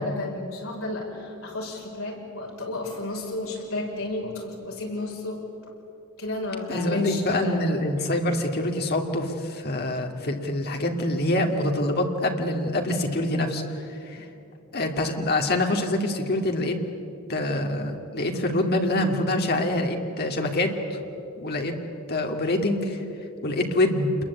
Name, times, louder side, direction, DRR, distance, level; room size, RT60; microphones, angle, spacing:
voice 1, 0.0-5.4 6.2-7.6 14.2-14.3, left 2 dB, 65° left, -1 dB, 6.2 m, -32 dB
voice 2, 6.7-13.6 14.0-14.2 14.7-16.8 17.3-21.0 21.4-21.7 22.1-23.0 23.4-24.1, left 1 dB, 45° left, 3 dB, 2.5 m, -25 dB
28.0 x 22.0 x 8.6 m, 2.8 s
head